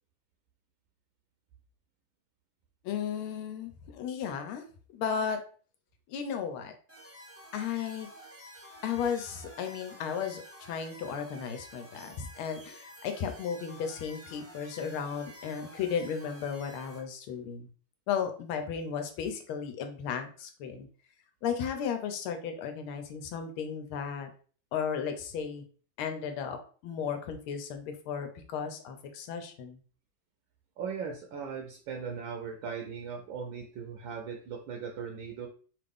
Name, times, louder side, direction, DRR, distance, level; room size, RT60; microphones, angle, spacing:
voice 1, 2.8-4.6 4.9-5.4 6.1-6.7 7.5-8.1 8.8-17.7 18.1-20.9 21.4-24.3 24.7-25.6 26.0-26.6 26.8-29.8, left 7 dB, 85° left, 6 dB, 1.5 m, -34 dB
sound 1, 6.9-17.0, equal, 10° right, 0.6 m, -50 dB
voice 2, 30.8-35.5, right 6 dB, 75° right, 2 dB, 1.3 m, -38 dB
3.6 x 2.5 x 3.4 m, 0.41 s
omnidirectional pair, 2.3 m